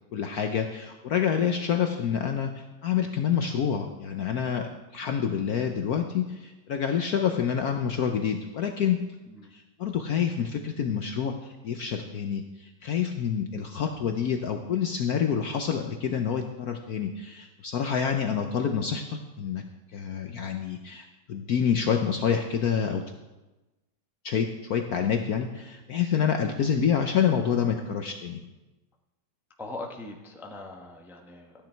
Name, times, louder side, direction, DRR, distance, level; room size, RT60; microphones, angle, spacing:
voice 1, 0.1-9.0 9.5-19.6 19.9-23.0 24.2-28.4, left 7 dB, 65° left, 4 dB, 1.0 m, -27 dB
voice 2, 29.6-31.7, left 2 dB, ahead, 1 dB, 0.7 m, -42 dB
13.5 x 9.5 x 4.5 m, 1.1 s
omnidirectional pair, 2.2 m